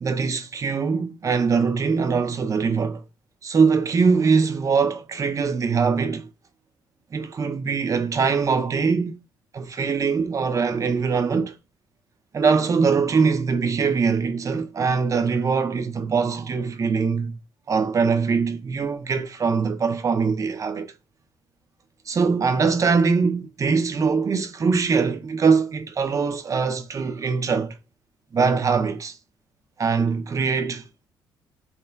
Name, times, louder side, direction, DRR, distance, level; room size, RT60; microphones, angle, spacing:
voice 1, 0.0-3.0 3.4-6.3 7.1-9.2 9.5-11.5 12.3-17.4 17.7-20.9 22.1-27.7 28.3-29.2 29.8-31.1, right 5 dB, 35° right, 0.5 m, -22 dB
3.0 x 2.2 x 2.2 m
hypercardioid pair, 60°, 10 cm